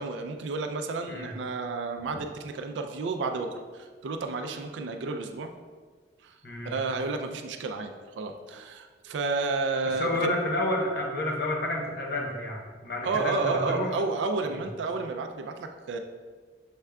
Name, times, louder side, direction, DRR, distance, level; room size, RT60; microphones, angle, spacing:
voice 1, 0.0-5.5 6.2-6.4 6.6-10.2 13.0-16.0, right 3 dB, 85° right, 5 dB, 0.4 m, -31 dB
voice 2, 6.4-6.8 10.0-13.9 14.5-14.6, left 1 dB, 55° left, -1 dB, 0.8 m, -30 dB
6.4 x 3.5 x 2.2 m, 1.5 s
head